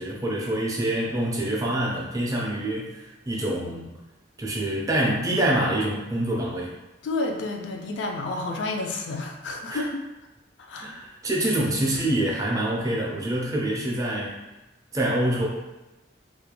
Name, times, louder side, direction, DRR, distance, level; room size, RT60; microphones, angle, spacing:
voice 1, 0.0-3.9 4.4-6.7 9.7-9.8 10.8-14.4 14.9-15.5, right 1 dB, 15° right, -3 dB, 0.3 m, -26 dB
voice 2, 7.0-10.0 10.6-10.9, left 2 dB, 70° left, 2 dB, 0.3 m, -30 dB
2.3 x 2.2 x 2.9 m, 1.0 s
head